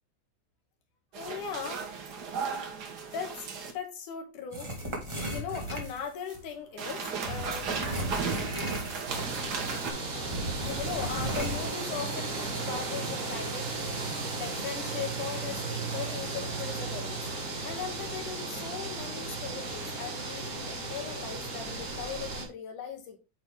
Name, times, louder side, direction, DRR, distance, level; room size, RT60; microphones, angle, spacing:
sound 1, 1.1-3.7 6.8-9.9, right 5 dB, 80° right, 0.9 m, -35 dB
voice 1, 1.2-1.8 3.1-4.7 5.2-7.7 10.6-17.2 17.6-23.2, left 7 dB, 80° left, 4 dB, 2.9 m, -39 dB
sound 2, 4.5-6.4 7.2-9.3 9.6-9.7 10.2-11.6, equal, 15° right, 0.9 m, -35 dB
sound 3, 9.1-22.5, right 3 dB, 40° right, 1.2 m, -35 dB
8.8 x 4.1 x 3.5 m, 0.31 s
omnidirectional pair, 3.6 m